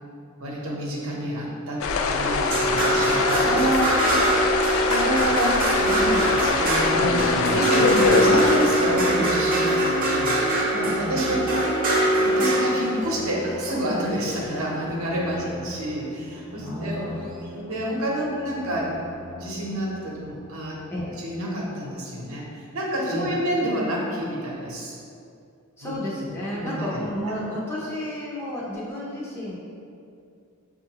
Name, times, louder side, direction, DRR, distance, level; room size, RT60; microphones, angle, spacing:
voice 1, 0.4-1.8 2.1-4.2 4.9-11.5 12.2-17.0 17.5-19.0 19.3-20.8 21.2-25.0 25.8-26.0 26.5-26.9 27.2-27.3, right 1 dB, 70° right, -4 dB, 0.8 m, -28 dB
sound 1, 1.8-9.1, left 4 dB, 65° left, 0.3 m, -24 dB
sound 2, 2.3-14.6 16.3-16.4, right 1 dB, 40° right, 0.6 m, -23 dB
sound 3, 3.2-20.3, right 2 dB, 90° right, 0.5 m, -43 dB
voice 2, 16.6-17.1 20.9-21.1 23.1-23.4 25.8-29.6, left 1 dB, 10° left, -7 dB, 0.6 m, -32 dB
6.1 x 2.4 x 2.9 m, 2.4 s
head